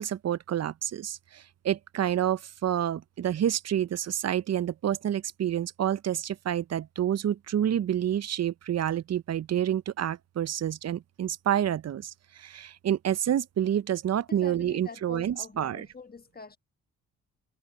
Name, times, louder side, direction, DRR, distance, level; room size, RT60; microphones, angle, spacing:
voice 1, 0.0-15.9, right 10 dB, 50° right, 0.6 m, -28 dB
voice 2, 14.3-16.6, left 4 dB, 25° left, 1.4 m, -44 dB
supercardioid pair, 55°, 34 cm